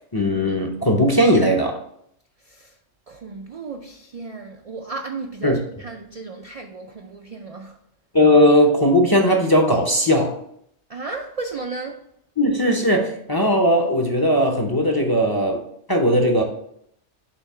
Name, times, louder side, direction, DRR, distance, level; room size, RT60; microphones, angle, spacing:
voice 1, 0.1-1.8 5.4-5.6 8.1-10.4 12.4-15.6 15.9-16.4, equal, 25° left, 0.5 m, -18 dB
voice 2, 2.4-2.8 3.1-7.8 10.9-12.0, right 3 dB, 55° right, 0.4 m, -34 dB
6.9 x 2.8 x 5.5 m
omnidirectional pair, 1.2 m